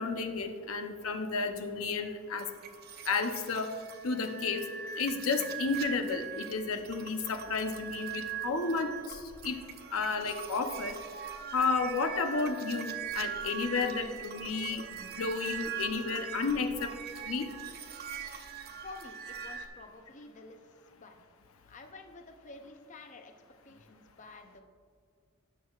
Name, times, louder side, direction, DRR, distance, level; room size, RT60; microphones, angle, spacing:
voice 1, 0.0-2.5 3.1-3.7 4.0-4.6 5.0-9.6 9.9-10.9 11.5-16.9 17.2-17.5, left 4 dB, 85° left, 6 dB, 0.7 m, -32 dB
sound 1, 2.4-19.7, right 8 dB, 50° right, 0.7 m, -42 dB
voice 2, 18.8-20.6 21.0-21.2 21.7-23.3 23.6-24.6, left 3 dB, 35° left, 5 dB, 0.6 m, -50 dB
17.5 x 6.4 x 2.4 m, 2.2 s
head